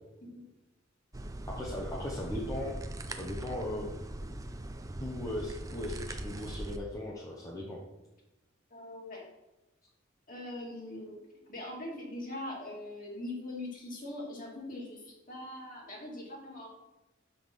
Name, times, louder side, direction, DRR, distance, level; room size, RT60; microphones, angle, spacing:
sound 1, 1.1-6.8, right 1 dB, 15° right, 0.5 m, -40 dB
voice 1, 1.5-2.8 3.2-3.9 5.0-7.8, left 1 dB, 15° left, -3 dB, 1.0 m, -38 dB
voice 2, 8.7-9.2 10.3-11.2 11.5-16.7, left 1 dB, 45° left, -3 dB, 2.3 m, -42 dB
5.8 x 5.4 x 6.2 m, 1.0 s
head